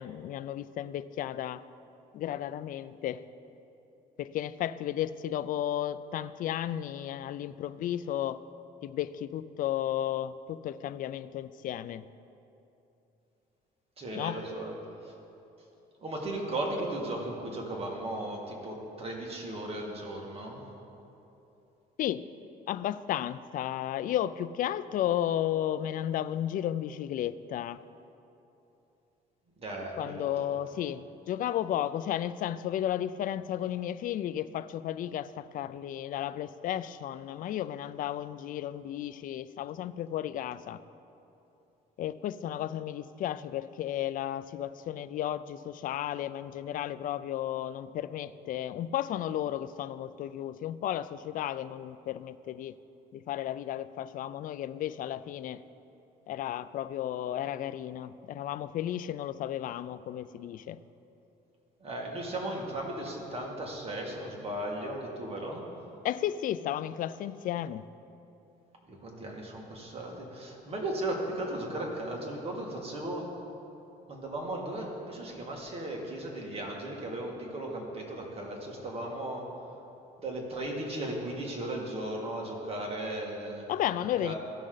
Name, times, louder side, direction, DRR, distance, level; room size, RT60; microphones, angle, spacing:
voice 1, 0.0-1.6 2.1-3.2 4.2-8.4 8.8-12.1 14.1-14.4 22.0-22.2 22.7-27.8 30.0-40.8 42.0-52.8 53.1-55.6 56.3-60.8 66.0-67.9 83.7-84.3, left 11 dB, 55° left, 14 dB, 0.4 m, -33 dB
voice 2, 14.0-14.7 15.1-15.2 16.0-20.6 29.6-30.5 61.8-65.6 68.9-73.3 74.1-79.4 80.2-83.6 84.2-84.3, right 1 dB, 35° right, -1 dB, 2.0 m, -36 dB
16.0 x 6.3 x 3.9 m, 2.9 s
cardioid pair, 110°, 17 cm